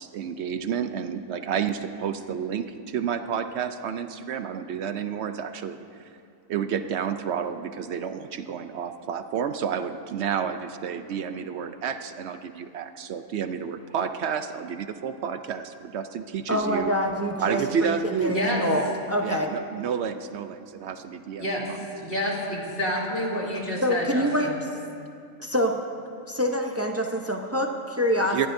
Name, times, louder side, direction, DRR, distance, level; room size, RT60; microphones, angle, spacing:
voice 1, 0.0-5.8 6.5-16.9 17.4-18.8 19.2-21.8 28.3-28.5, right 7 dB, 65° right, 9 dB, 0.7 m, -30 dB
voice 2, 16.5-19.5 23.8-24.5 25.4-25.8 26.3-28.5, equal, 20° right, 2 dB, 0.4 m, -26 dB
voice 3, 18.3-18.6 21.4-21.7 22.0-24.6, equal, 40° left, -4 dB, 2.5 m, -28 dB
22.0 x 15.5 x 2.6 m, 2.4 s
omnidirectional pair, 1.6 m